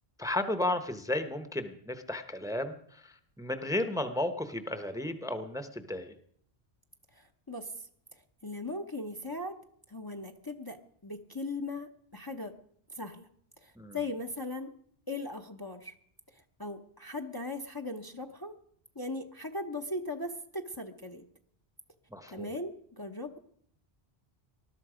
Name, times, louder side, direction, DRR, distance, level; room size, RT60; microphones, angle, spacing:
voice 1, 0.2-6.1 13.8-14.0 22.1-22.5, left 1 dB, 5° right, 9 dB, 0.9 m, -34 dB
voice 2, 7.2-7.7 8.4-9.6 9.9-10.8 11.0-12.5 12.9-13.3 13.6-14.7 15.1-15.9 16.6-18.5 19.0-21.2 22.3-23.4, left 2 dB, 25° left, 3 dB, 0.9 m, -38 dB
20.0 x 12.5 x 5.0 m, 0.65 s
omnidirectional pair, 1.0 m